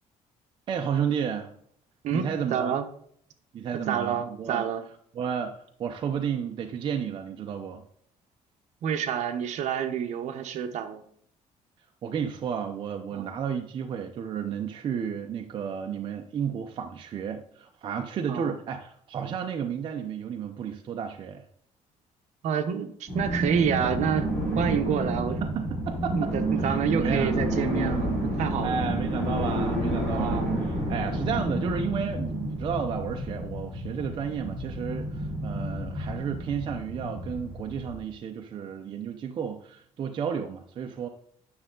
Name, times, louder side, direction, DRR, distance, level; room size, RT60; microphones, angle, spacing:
voice 1, 0.7-1.5 2.1-2.8 3.5-4.6 5.1-7.8 12.0-21.4 25.4-26.3 26.6-27.4 28.6-41.1, right 7 dB, 40° right, 4 dB, 0.6 m, -32 dB
voice 2, 2.0-2.9 3.9-4.8 8.8-11.0 13.1-13.4 18.3-18.6 22.4-24.3 24.5-25.4 26.1-28.8 30.1-30.6, right 8 dB, 60° right, 8 dB, 0.9 m, -28 dB
sound 1, 23.1-38.0, right 1 dB, 5° left, 4.0 m, -30 dB
9.6 x 6.5 x 3.8 m, 0.64 s
cardioid pair, 175°, 13 cm